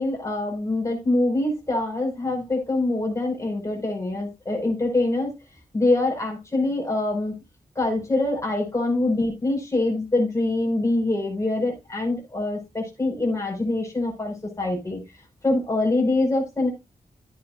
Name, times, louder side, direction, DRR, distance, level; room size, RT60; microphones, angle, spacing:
voice 1, 0.0-5.3 5.7-7.4 7.8-15.0 15.4-16.7, left 2 dB, 20° left, 0 dB, 5.2 m, -24 dB
12.5 x 9.5 x 2.5 m, 0.23 s
wide cardioid pair, 130°, 15 cm